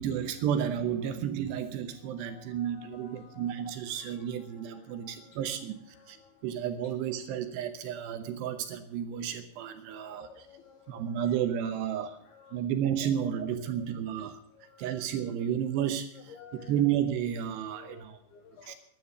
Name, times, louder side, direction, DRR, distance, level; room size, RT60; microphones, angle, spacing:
voice 1, 0.0-6.2 6.4-10.5 10.9-12.2 12.5-14.4 14.8-16.4 16.7-18.2 18.7-18.8, right 9 dB, 75° right, 9 dB, 2.8 m, -32 dB
voice 2, 2.0-3.6 3.9-5.4 5.9-6.5 7.1-7.2 9.9-11.3 11.6-11.8 12.3-12.6 13.0-13.9 14.1-14.3 14.5-15.1 16.1-16.9 17.7-18.7, left 8 dB, 80° left, 7 dB, 2.3 m, -54 dB
12.5 x 10.5 x 7.0 m, 0.77 s
omnidirectional pair, 5.5 m